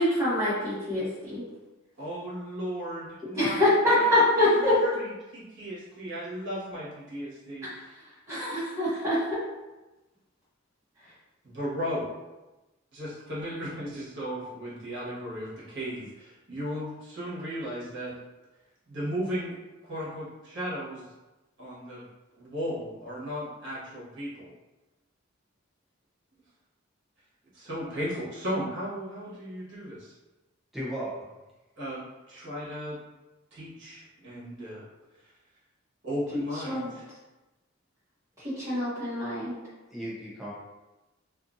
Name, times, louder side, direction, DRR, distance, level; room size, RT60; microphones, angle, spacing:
voice 1, 0.0-1.4 3.4-4.9 8.3-9.2 36.3-36.9 38.6-39.6, left 1 dB, 15° right, -16 dB, 1.0 m, -25 dB
voice 2, 2.0-4.7 4.9-7.9 11.4-12.1 12.9-18.1 18.9-19.6 19.8-21.1 21.6-22.0 22.4-24.5 27.5-30.1 31.8-33.0 33.5-34.8 36.0-37.1, equal, 65° right, -8 dB, 1.2 m, -36 dB
voice 3, 30.7-31.3 39.9-40.5, right 1 dB, ahead, -7 dB, 0.6 m, -35 dB
2.6 x 2.5 x 2.5 m, 1.1 s
head